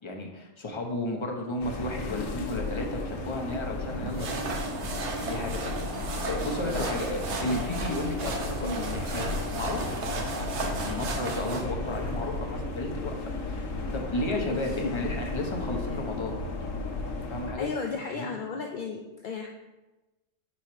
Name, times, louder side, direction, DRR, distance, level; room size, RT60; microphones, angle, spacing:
voice 1, 0.0-4.5 5.2-5.8 6.3-13.7 13.9-16.4 17.3-17.7 18.2-18.3, left 1 dB, 25° left, 1 dB, 0.8 m, -33 dB
sound 1, 1.6-17.5, left 3 dB, 85° left, 1.3 m, -34 dB
sound 2, 4.0-11.7, right 3 dB, 65° right, 1.1 m, -35 dB
sound 3, 5.8-6.8 8.4-10.6 10.9-11.0 11.8-12.7 15.2-16.2 17.5-18.2, equal, 25° right, 0.8 m, -51 dB
voice 2, 14.5-14.9 17.6-19.5, left 4 dB, 60° left, 2 dB, 0.5 m, -34 dB
4.7 x 4.2 x 5.7 m, 1.1 s
omnidirectional pair, 1.3 m